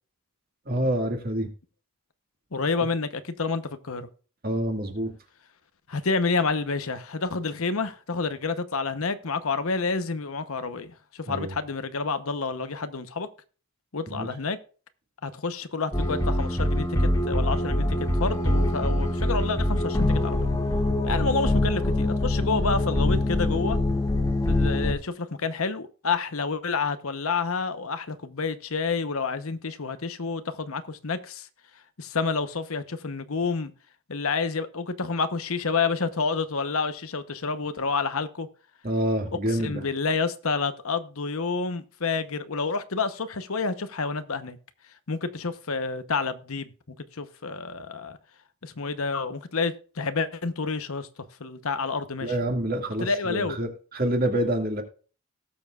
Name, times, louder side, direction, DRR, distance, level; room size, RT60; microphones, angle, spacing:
voice 1, 0.7-1.5 4.4-5.1 11.3-11.5 14.1-14.3 38.8-39.9 52.2-54.8, right 1 dB, 40° right, 2.1 m, -27 dB
voice 2, 2.5-4.1 5.9-13.3 13.9-14.6 15.2-20.5 21.0-23.8 24.5-31.5 32.0-33.7 34.1-38.5 39.6-44.6 45.1-46.7 47.1-48.2 48.6-51.1 51.4-52.3 53.0-53.6, left 4 dB, 75° left, 1.0 m, -29 dB
sound 1, 15.9-24.9, left 1 dB, 15° left, 1.7 m, -24 dB
18.5 x 7.1 x 2.4 m
head